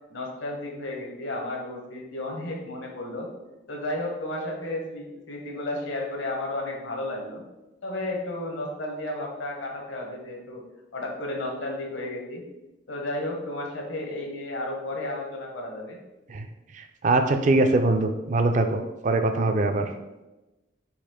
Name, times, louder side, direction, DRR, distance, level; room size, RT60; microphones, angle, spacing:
voice 1, 0.1-3.3 3.7-7.4 7.8-10.6 10.9-12.4 12.9-16.0, left 1 dB, 75° left, 0 dB, 1.0 m, -33 dB
voice 2, 16.7-19.9, right 2 dB, 40° right, 7 dB, 0.3 m, -23 dB
4.1 x 2.8 x 4.3 m, 1.0 s
head